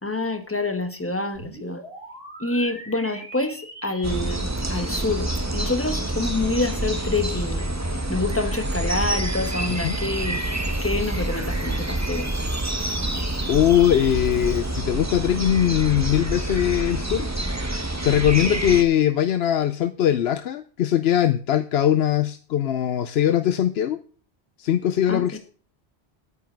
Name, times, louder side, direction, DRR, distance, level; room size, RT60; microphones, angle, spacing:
voice 1, 0.0-1.8 2.4-7.7 8.1-10.4 10.8-12.3 18.5-18.6 25.1-25.4, left 2 dB, 15° left, 8 dB, 1.2 m, -27 dB
sound 1, 1.3-14.7, right 1 dB, 60° right, 3.4 m, -44 dB
sound 2, 4.0-18.8, right 1 dB, 15° right, 1.0 m, -27 dB
voice 2, 13.5-17.3 18.0-24.0 24.6-25.4, left 11 dB, 75° left, 11 dB, 0.9 m, -21 dB
9.6 x 9.5 x 4.5 m, 0.41 s
omnidirectional pair, 1.1 m